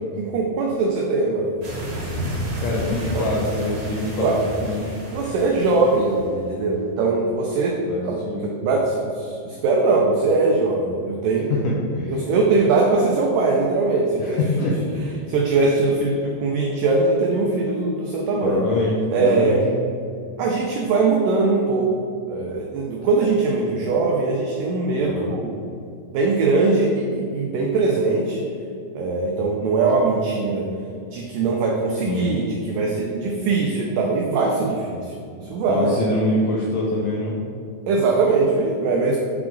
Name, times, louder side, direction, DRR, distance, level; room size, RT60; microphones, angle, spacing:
voice 1, 0.2-1.5 3.1-3.2 4.2-4.4 5.1-11.5 12.1-14.4 15.3-18.6 19.1-19.6 20.4-21.9 22.3-25.6 26.1-28.5 28.9-30.7 31.1-36.0 37.9-39.2, right 3 dB, 85° right, -1 dB, 1.9 m, -21 dB
sound 1, 1.6-6.4, equal, 55° right, 2.3 m, -31 dB
voice 2, 2.6-5.0 7.9-8.5 11.6-12.2 14.2-15.0 18.4-19.6 25.0-25.4 32.1-32.3 35.7-37.4, left 2 dB, 80° left, -4 dB, 1.9 m, -24 dB
7.0 x 4.7 x 3.8 m, 2.5 s
omnidirectional pair, 4.5 m